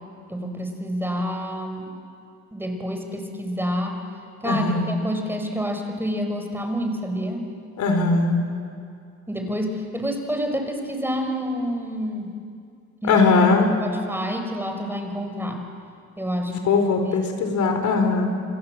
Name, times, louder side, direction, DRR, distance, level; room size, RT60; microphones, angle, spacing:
voice 1, 0.3-1.9 2.5-4.0 4.4-7.5 9.3-12.4 13.0-13.2 13.6-15.7 16.2-16.5 17.0-17.3, equal, 5° right, 4 dB, 5.2 m, -28 dB
voice 2, 4.4-4.9 7.8-8.4 13.1-13.7 16.5-18.3, left 4 dB, 75° left, 5 dB, 4.5 m, -20 dB
29.0 x 25.0 x 7.9 m, 2.4 s
cardioid pair, 90°, 30 cm